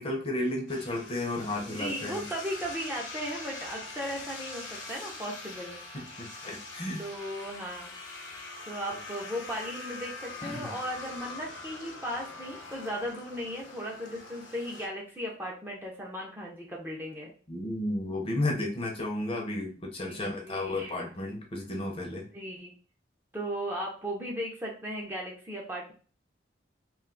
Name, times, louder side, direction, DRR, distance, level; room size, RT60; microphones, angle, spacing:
voice 1, 0.0-2.3 5.9-7.0 10.4-10.7 17.5-22.3, left 1 dB, 30° left, 0 dB, 0.6 m, -33 dB
sound 1, 0.7-14.9, left 3 dB, 80° left, 0.8 m, -43 dB
voice 2, 1.6-5.8 7.0-7.9 8.7-17.3 19.6-21.0 22.3-22.7 23.3-25.9, equal, 10° right, -3 dB, 0.5 m, -37 dB
2.4 x 2.3 x 3.8 m, 0.40 s
head